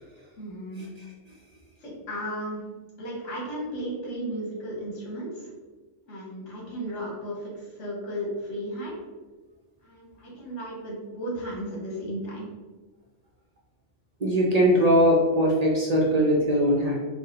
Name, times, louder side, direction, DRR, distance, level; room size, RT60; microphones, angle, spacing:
voice 1, 0.4-0.8 1.8-2.6 3.0-5.5 6.1-9.0 9.8-12.5, equal, 70° left, -4 dB, 1.5 m, -34 dB
voice 2, 14.2-17.0, equal, 45° right, -3 dB, 0.5 m, -20 dB
4.1 x 2.1 x 3.8 m, 1.3 s
omnidirectional pair, 1.3 m